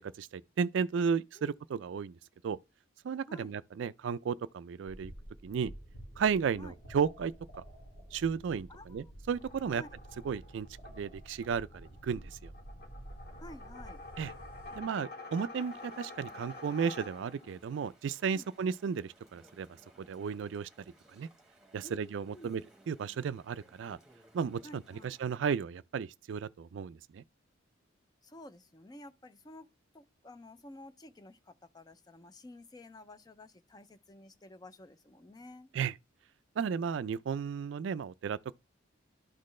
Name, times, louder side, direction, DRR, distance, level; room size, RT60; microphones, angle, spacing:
voice 1, 0.0-2.1 2.4-2.6 3.0-5.1 5.4-5.7 6.2-7.3 8.1-9.8 10.3-10.7 10.9-12.5 14.2-14.3 14.7-19.7 20.1-20.7 21.1-21.3 21.7-22.6 22.9-24.0 24.3-27.2 35.7-35.9 36.6-38.5, right 6 dB, 65° right, 0.3 m, -34 dB
sound 1, 4.9-14.8, right 1 dB, 80° left, 2.5 m, -50 dB
voice 2, 8.7-9.1 9.7-9.9 13.4-14.0 18.3-18.6 21.8-22.6 24.6-25.2 28.2-29.7 29.9-35.7, left 1 dB, 20° left, 0.4 m, -52 dB
sound 2, 9.3-17.6, left 2 dB, 50° left, 1.7 m, -49 dB
Chatter / Stream, 15.6-25.4, right 1 dB, 5° right, 1.2 m, -63 dB
12.0 x 4.2 x 3.2 m
head